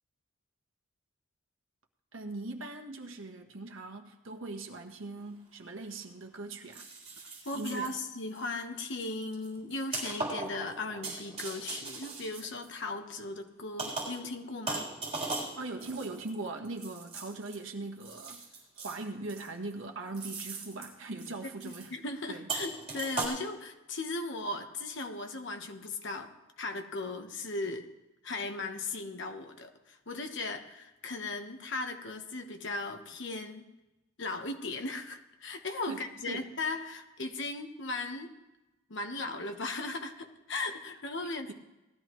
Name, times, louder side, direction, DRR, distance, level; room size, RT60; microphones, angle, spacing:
voice 1, 2.1-6.9 7.5-7.9 15.6-18.4 18.8-21.9 22.3-22.5 35.9-36.5, right 2 dB, 75° right, 3 dB, 1.4 m, -40 dB
sound 1, 5.2-5.3 6.7-8.0 8.4-8.6 9.0-13.1 13.8-14.3 14.7-17.6 18.0-19.0 19.3-19.7 20.1-20.9 21.2-21.3 21.6-21.9 22.5-23.3, right 3 dB, 30° right, 3.7 m, -39 dB
voice 2, 7.4-14.9 21.6-27.9 28.2-33.7 34.2-38.3 38.9-41.5, left 2 dB, 60° left, 6 dB, 1.2 m, -37 dB
19.0 x 13.0 x 3.1 m, 1.0 s
head